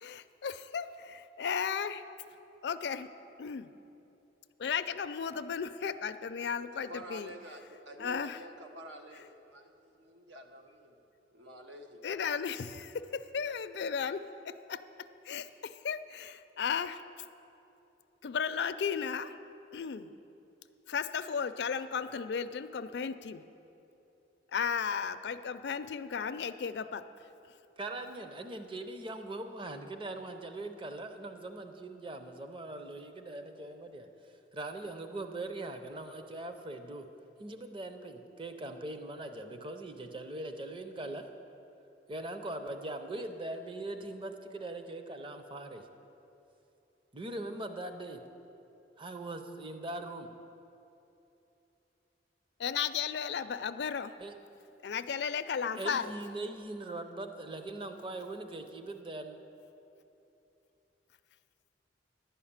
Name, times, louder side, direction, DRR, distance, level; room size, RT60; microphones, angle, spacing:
voice 1, 0.0-2.0 2.6-3.1 3.4-3.7 4.6-7.3 8.0-8.4 12.0-14.8 15.3-17.0 18.2-19.3 19.7-20.1 20.9-23.4 24.5-27.0 52.6-54.1 54.8-56.1, left 6 dB, 65° left, 12 dB, 0.4 m, -35 dB
voice 2, 6.7-10.9 11.3-12.1, equal, 85° right, 4 dB, 0.9 m, -49 dB
voice 3, 27.8-34.1 34.5-37.1 37.4-41.3 42.1-45.9 47.1-48.2 49.0-50.3 54.2-54.3 55.8-59.4, right 2 dB, 30° right, 7 dB, 0.6 m, -41 dB
11.5 x 5.7 x 8.7 m, 2.9 s
head